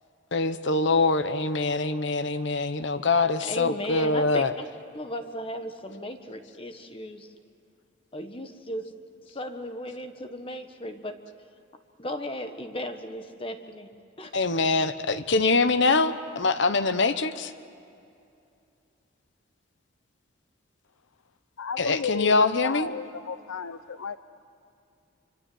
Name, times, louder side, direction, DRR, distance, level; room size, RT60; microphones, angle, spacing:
voice 1, 0.3-4.5 14.3-17.5 21.8-22.9, left 3 dB, 60° left, 1.0 m, -24 dB
voice 2, 3.4-4.7 4.9-7.3 8.1-9.0 9.3-11.2 12.0-13.9 14.2-14.3, left 1 dB, 25° left, 1.4 m, -36 dB
voice 3, 21.6-24.2, left 5 dB, 85° left, 0.6 m, -33 dB
28.0 x 25.5 x 7.8 m
head